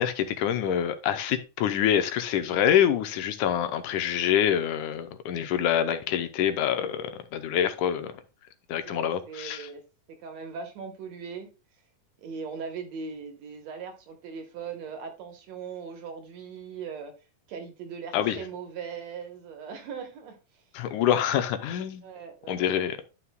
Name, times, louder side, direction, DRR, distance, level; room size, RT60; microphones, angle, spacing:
voice 1, 0.0-8.1 8.7-9.7 18.1-18.4 20.7-22.0 22.5-23.1, left 9 dB, 80° left, 2.2 m, -26 dB
voice 2, 8.8-9.8 10.1-11.5 12.2-17.1 17.5-20.6 22.0-22.9, right 6 dB, 65° right, 2.3 m, -39 dB
11.5 x 5.9 x 2.3 m
omnidirectional pair, 3.6 m